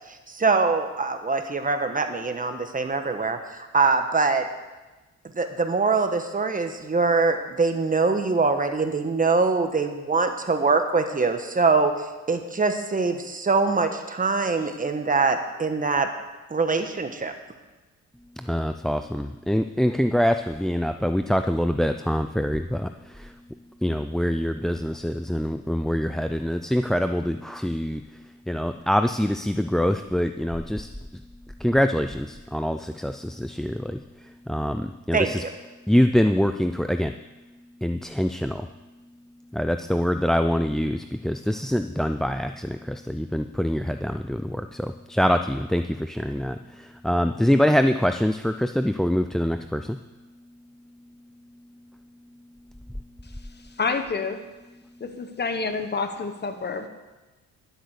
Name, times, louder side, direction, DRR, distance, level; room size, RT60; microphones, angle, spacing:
voice 1, 0.1-4.4 5.3-11.9 12.3-16.1 16.5-17.3 35.1-35.3, right 4 dB, 25° right, 6 dB, 1.3 m, -23 dB
voice 2, 18.4-23.3 23.8-28.2 28.5-30.9 31.6-35.4 35.9-37.2 37.8-38.7 39.5-50.0, equal, ahead, 9 dB, 0.4 m, -25 dB
voice 3, 53.8-54.4 55.0-56.9, left 4 dB, 35° left, 8 dB, 1.2 m, -28 dB
12.0 x 8.0 x 6.5 m, 1.1 s
cardioid pair, 90°, 30 cm